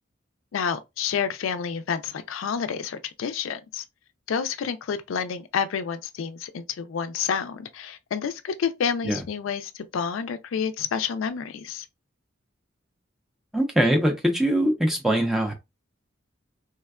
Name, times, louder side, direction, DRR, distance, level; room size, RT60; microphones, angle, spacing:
voice 1, 0.5-3.8 4.3-11.9, left 7 dB, 90° left, 0.4 m, -29 dB
voice 2, 13.5-15.5, right 1 dB, ahead, 0.5 m, -22 dB
3.4 x 2.2 x 2.3 m
head